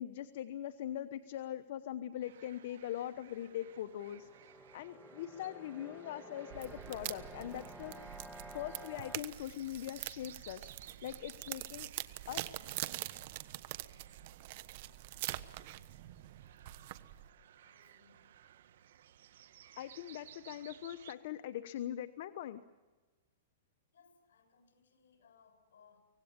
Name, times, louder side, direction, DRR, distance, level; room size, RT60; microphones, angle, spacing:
voice 1, 0.0-8.2 8.5-11.9 12.3-12.5 19.8-22.6, left 11 dB, 55° left, 10 dB, 1.0 m, -42 dB
sound 1, 2.2-21.1, right 11 dB, 70° right, 1.3 m, -59 dB
sound 2, 3.2-9.2, equal, 5° left, 1.5 m, -53 dB
sound 3, 6.5-17.3, right 16 dB, 50° right, 1.2 m, -44 dB
voice 2, 17.6-18.3 23.9-26.0, left 6 dB, 75° left, 5 dB, 6.8 m, -66 dB
25.0 x 18.0 x 8.8 m, 1.3 s
hypercardioid pair, 150°, 0 cm